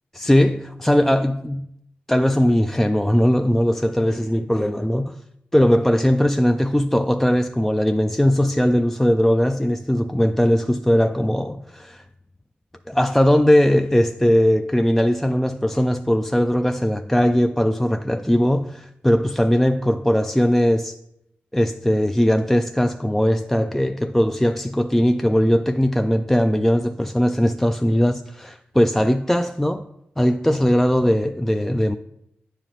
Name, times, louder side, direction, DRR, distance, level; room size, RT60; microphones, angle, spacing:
voice 1, 0.2-1.7 2.1-5.2 5.5-12.0 12.9-20.9 21.5-29.8 30.2-32.0, equal, 5° left, 0.3 m, -19 dB
8.9 x 4.9 x 3.0 m
supercardioid pair, 45°, 4 cm